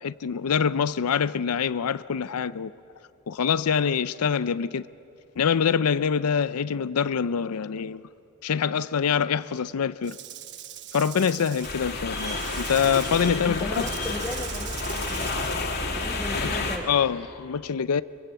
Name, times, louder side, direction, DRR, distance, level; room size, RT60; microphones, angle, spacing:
voice 1, 0.0-2.7 3.3-4.9 5.4-8.0 8.4-10.2 10.9-13.8 16.3-16.5 16.9-18.0, left 7 dB, 80° left, 0.5 m, -25 dB
Rattle / Rattle (instrument), 10.0-15.6, right 11 dB, 50° right, 1.0 m, -41 dB
sound 1, 11.6-16.8, left 3 dB, 45° left, 2.7 m, -30 dB
voice 2, 13.4-15.3 15.9-16.9, left 1 dB, 10° left, 1.1 m, -36 dB
23.5 x 23.0 x 8.2 m
head